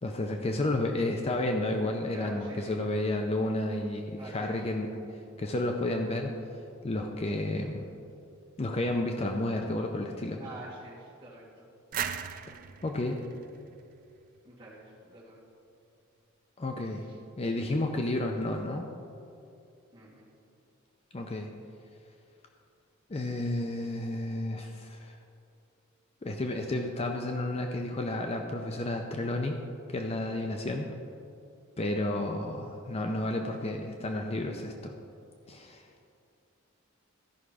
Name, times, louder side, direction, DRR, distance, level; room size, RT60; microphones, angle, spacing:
voice 1, 0.0-6.3 6.8-7.8 8.6-10.4 12.8-13.2 16.6-17.0 17.4-18.9 21.1-21.5 23.1-25.1 26.2-29.6 29.9-30.9 31.8-34.9 35.5-35.8, left 1 dB, 30° left, 3 dB, 0.5 m, -31 dB
voice 2, 2.1-2.8 4.2-4.7 10.4-11.6 14.4-15.4 17.0-17.2 19.9-20.3 34.4-34.5, right 1 dB, 25° right, -7 dB, 2.5 m, -47 dB
sound 1, 11.9-14.6, right 8 dB, 40° right, 0.4 m, -38 dB
13.0 x 5.7 x 4.9 m, 2.5 s
head